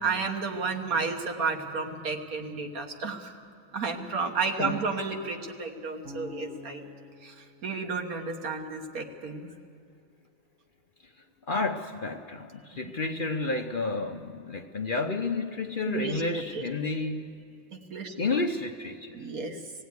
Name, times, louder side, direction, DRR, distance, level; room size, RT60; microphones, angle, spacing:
voice 1, 0.0-3.4 3.7-6.9 7.2-9.5 15.9-16.6 17.9-18.2 19.1-19.6, right 4 dB, 75° right, 4 dB, 1.8 m, -32 dB
Bass guitar, 6.0-9.1, left 5 dB, 55° right, 4.3 m, -48 dB
voice 2, 11.5-17.3 18.2-19.2, left 3 dB, 45° left, 4 dB, 0.8 m, -31 dB
18.5 x 15.5 x 9.4 m, 2.3 s
omnidirectional pair, 1.5 m